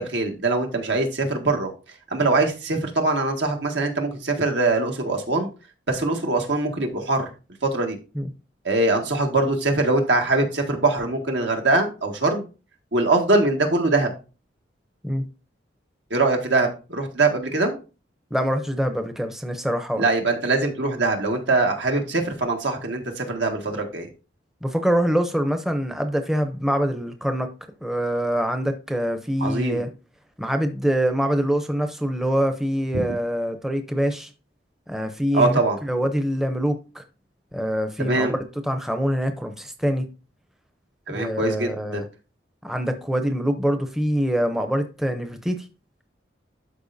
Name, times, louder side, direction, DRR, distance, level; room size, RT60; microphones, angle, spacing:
voice 1, 0.0-1.7 2.1-5.5 5.9-7.3 7.7-8.0 8.6-12.4 12.9-14.1 16.1-17.8 20.0-24.1 29.4-29.8 35.3-35.8 38.0-38.4 41.1-42.0, right 2 dB, 80° right, 1.7 m, -22 dB
voice 2, 18.3-20.1 24.6-27.5 27.8-29.9 30.4-34.3 34.9-37.0 37.5-38.3 38.6-40.1 41.1-42.1 42.6-45.7, equal, ahead, 0.6 m, -24 dB
12.0 x 4.4 x 2.6 m
head